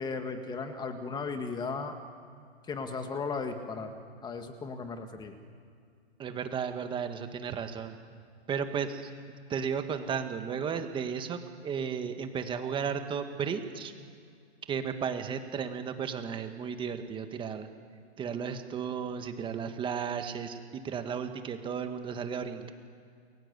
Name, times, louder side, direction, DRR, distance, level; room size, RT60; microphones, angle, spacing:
voice 1, 0.0-2.0 2.7-3.9 4.2-5.3, left 4 dB, 10° left, 7 dB, 1.9 m, -36 dB
voice 2, 6.2-8.0 8.5-9.1 9.5-13.9 14.7-17.7 18.2-22.7, right 7 dB, 15° right, 7 dB, 1.6 m, -34 dB
29.5 x 22.5 x 8.2 m, 2.3 s
hypercardioid pair, 145°, 34 cm